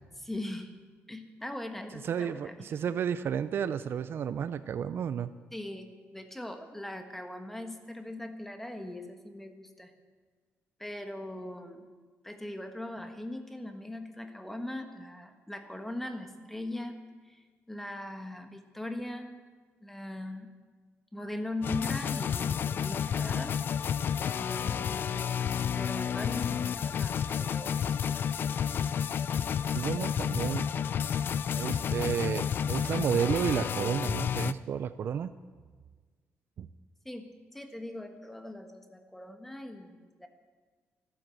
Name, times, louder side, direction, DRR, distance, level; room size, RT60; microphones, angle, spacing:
voice 1, 0.2-0.7 1.1-2.5 5.5-5.9 6.1-9.9 10.8-11.9 12.2-17.0 17.2-19.3 19.8-20.5 21.1-23.6 24.3-27.8 28.1-28.3 37.0-40.3, left 1 dB, 5° left, 6 dB, 1.4 m, -40 dB
voice 2, 2.0-5.3 29.7-30.7 31.5-35.3 36.6-36.7, right 8 dB, 55° right, 13 dB, 0.5 m, -31 dB
sound 1, 21.6-34.5, left 8 dB, 50° left, 0.4 m, -31 dB
14.5 x 12.5 x 7.6 m, 1.4 s
cardioid pair, 140°, 5 cm